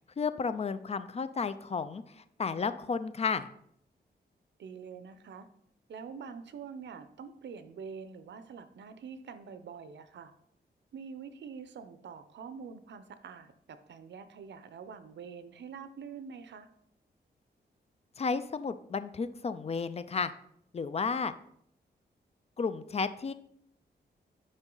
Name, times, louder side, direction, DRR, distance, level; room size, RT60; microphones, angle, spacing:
voice 1, 0.2-3.5 18.2-20.3 20.7-21.3 22.6-23.3, left 5 dB, 35° left, 13 dB, 0.4 m, -32 dB
voice 2, 4.6-5.5 5.9-10.3 10.9-16.7, right 6 dB, 85° right, 10 dB, 0.7 m, -45 dB
8.9 x 5.4 x 3.9 m, 0.70 s
wide cardioid pair, 130°, 18 cm